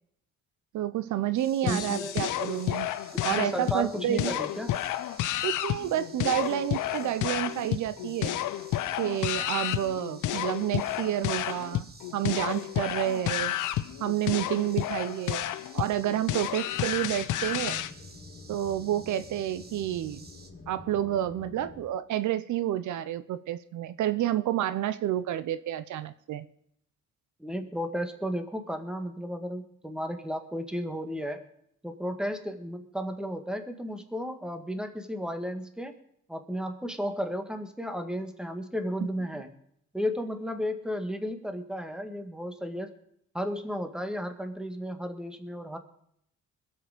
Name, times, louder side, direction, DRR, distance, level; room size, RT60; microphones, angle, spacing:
voice 1, 0.7-2.9 3.2-4.4 5.4-8.4 9.0-13.5 14.0-17.9 18.5-20.2 20.7-26.5, right 12 dB, 75° right, 13 dB, 0.7 m, -29 dB
sound 1, 1.3-20.5, right 3 dB, 30° right, 1.7 m, -53 dB
voice 2, 1.6-2.2 3.1-4.8 27.4-31.4 31.8-35.9 36.3-39.5 39.9-42.9 43.3-45.8, equal, 5° right, 7 dB, 1.7 m, -33 dB
sound 2, 1.7-17.9, left 13 dB, 80° left, 0.8 m, -31 dB
sound 3, 16.7-21.9, left 4 dB, 35° left, 3.3 m, -48 dB
21.0 x 7.9 x 5.1 m, 0.72 s
cardioid pair, 90°, 30 cm